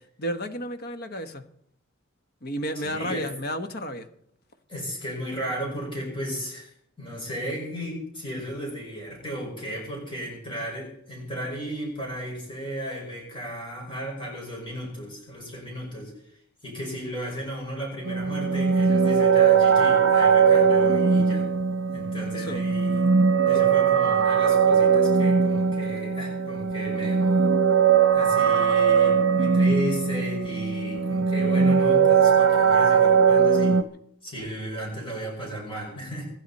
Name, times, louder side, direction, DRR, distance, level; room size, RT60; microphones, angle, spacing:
voice 1, 0.2-1.4 2.4-4.1 22.3-22.6 23.5-23.6, equal, 50° left, 8 dB, 1.3 m, -32 dB
voice 2, 2.7-3.3 4.7-6.7 7.0-16.3 16.6-21.5 21.9-23.1 23.4-27.6 28.1-33.8 34.2-36.3, equal, 25° left, -2 dB, 5.8 m, -35 dB
sound 1, 18.0-33.8, right 6 dB, 65° right, 0.9 m, -20 dB
25.5 x 11.0 x 4.3 m, 0.71 s
head